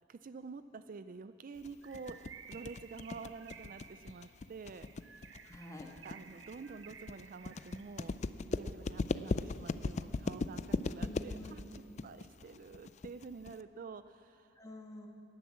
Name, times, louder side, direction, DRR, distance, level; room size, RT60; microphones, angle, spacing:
voice 1, 0.1-2.2 2.5-5.3 6.0-11.6 12.0-14.6, right 4 dB, 40° right, 11 dB, 0.4 m, -49 dB
sound 1, 1.6-13.6, left 3 dB, 35° left, 0.4 m, -38 dB
Bird, 1.8-8.1, right 7 dB, 65° right, 0.8 m, -55 dB
voice 2, 5.4-5.9 11.0-11.7 14.6-15.1, left 1 dB, 15° left, 1 dB, 1.6 m, -48 dB
18.0 x 11.0 x 7.3 m, 2.8 s
head